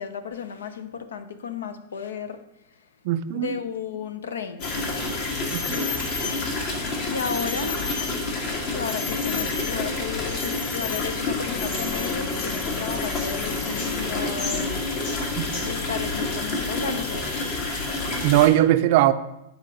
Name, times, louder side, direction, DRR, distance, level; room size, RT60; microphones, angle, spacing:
voice 1, 0.0-2.4 3.3-4.8 7.0-7.8 8.7-15.1 15.6-17.3, left 7 dB, 80° left, 10 dB, 0.6 m, -33 dB
voice 2, 3.0-3.5 5.5-5.9 15.4-15.7 18.2-19.1, right 13 dB, 55° right, 12 dB, 0.4 m, -20 dB
sound 1, 4.6-18.5, left 3 dB, 50° left, 1.6 m, -28 dB
Wind instrument woodwind instrument, 11.4-15.5, left 4 dB, 10° left, 0.4 m, -41 dB
9.6 x 4.3 x 4.1 m, 0.88 s
hypercardioid pair, 105°, 0 cm